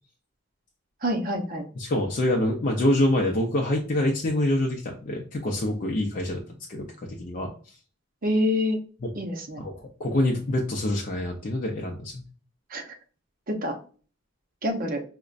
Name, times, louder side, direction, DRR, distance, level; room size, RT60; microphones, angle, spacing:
voice 1, 1.0-1.6 8.2-8.8 9.1-9.6 12.7-13.0 13.5-13.8 14.6-15.0, left 1 dB, 45° right, 3 dB, 0.7 m, -26 dB
voice 2, 1.8-6.4 6.7-7.5 9.6-12.2, left 1 dB, 45° left, -1 dB, 0.5 m, -26 dB
4.9 x 2.1 x 2.4 m, 0.39 s
head